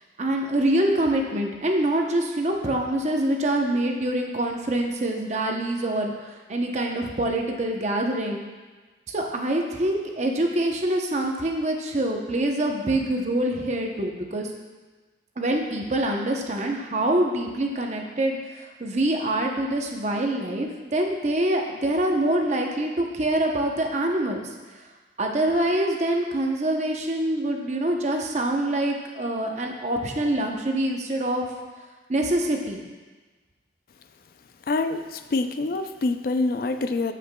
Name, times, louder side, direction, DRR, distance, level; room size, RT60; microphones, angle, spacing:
voice 1, 0.2-8.4 9.1-14.5 15.4-24.5 25.2-31.4 32.1-32.8, right 1 dB, 40° right, 2 dB, 0.7 m, -25 dB
voice 2, 34.7-37.1, left 3 dB, 55° left, 9 dB, 0.4 m, -26 dB
13.5 x 4.9 x 2.2 m, 1.3 s
head